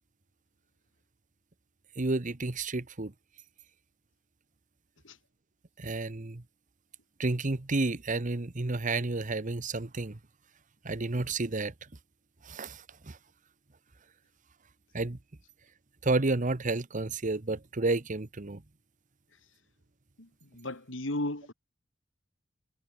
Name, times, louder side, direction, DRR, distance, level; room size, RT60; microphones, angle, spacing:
voice 1, 2.0-3.1 5.8-6.4 7.2-10.2 10.8-11.7 12.5-13.2 14.9-15.2 16.0-18.6, right 2 dB, 40° right, 1.1 m, -31 dB
voice 2, 20.2-21.5, left 1 dB, 90° left, 3.6 m, -35 dB
head